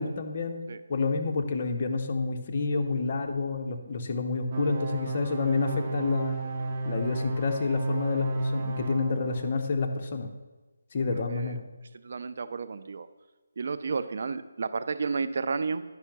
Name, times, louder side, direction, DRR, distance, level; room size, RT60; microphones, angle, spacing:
voice 1, 0.0-6.4 6.8-10.3 10.9-11.6, left 3 dB, 40° left, 4 dB, 0.9 m, -29 dB
sound 1, 4.5-9.5, right 2 dB, 35° right, 1.0 m, -32 dB
voice 2, 11.2-11.6 11.9-13.1 13.6-15.8, right 4 dB, 55° right, 11 dB, 0.5 m, -32 dB
10.5 x 5.6 x 5.9 m, 1.2 s
figure-of-eight pair, 160°, 0 cm